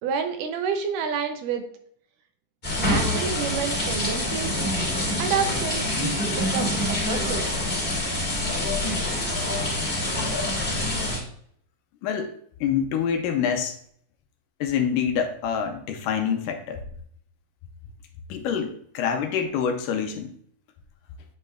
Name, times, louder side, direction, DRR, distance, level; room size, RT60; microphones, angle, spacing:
voice 1, 0.0-1.6 2.8-4.6 5.2-6.0 6.3-7.6, right 6 dB, 80° right, 6 dB, 2.2 m, -29 dB
sound 1, 2.6-11.2, left 1 dB, 20° left, 2.1 m, -26 dB
voice 2, 12.0-12.3 12.6-13.7 14.6-16.8 18.3-20.3, left 7 dB, 80° left, 5 dB, 2.2 m, -26 dB
8.9 x 5.3 x 2.5 m, 0.64 s
omnidirectional pair, 4.1 m